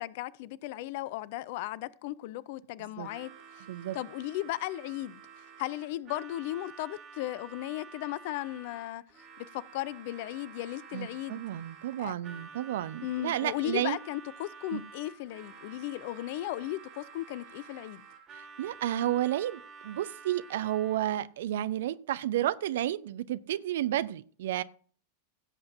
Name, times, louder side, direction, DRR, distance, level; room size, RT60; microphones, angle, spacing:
voice 1, 0.0-3.3 3.6-3.7 3.9-5.2 5.6-9.0 9.4-11.4 12.0-12.1 13.0-18.0, left 15 dB, 50° left, 0.5 m, -36 dB
voice 2, 2.8-3.1 3.7-4.0 10.9-14.0 14.7-14.8 18.3-24.6, right 13 dB, 55° right, 0.6 m, -32 dB
Harmonica, 3.0-21.2, right 5 dB, 30° right, 3.6 m, -50 dB
16.5 x 7.8 x 2.7 m
figure-of-eight pair, 90°, 0 cm